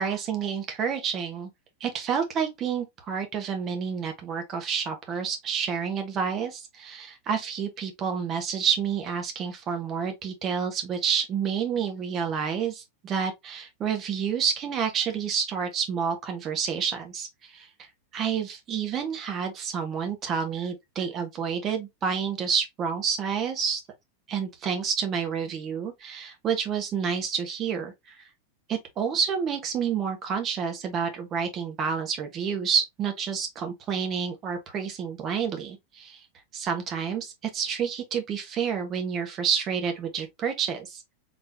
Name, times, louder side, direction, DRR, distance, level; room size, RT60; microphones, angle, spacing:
voice 1, 0.0-1.5 1.8-17.9 18.1-23.8 24.3-28.2 28.7-36.2 36.5-41.1, right 7 dB, 30° right, 1.1 m, -29 dB
4.1 x 3.4 x 2.7 m
figure-of-eight pair, 90°, 0 cm